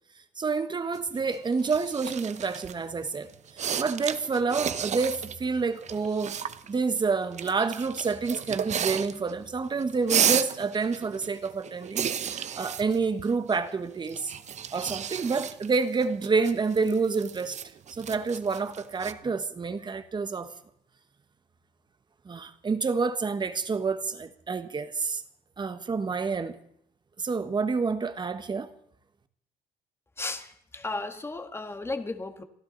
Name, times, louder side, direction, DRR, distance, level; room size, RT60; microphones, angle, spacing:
voice 1, 0.4-6.4 6.7-14.3 14.7-17.6 17.9-20.5 22.2-25.2 25.6-26.6 27.2-28.7, right 4 dB, 25° right, 1.3 m, -28 dB
sound 1, 0.9-2.8 3.3-5.4 5.6-6.7 7.4-9.4 9.7-13.7 14.0-19.1, right 8 dB, 45° right, 0.8 m, -33 dB
voice 2, 30.2-32.4, left 2 dB, 15° left, 1.6 m, -34 dB
29.0 x 11.5 x 4.0 m
cardioid pair, 110°, 17 cm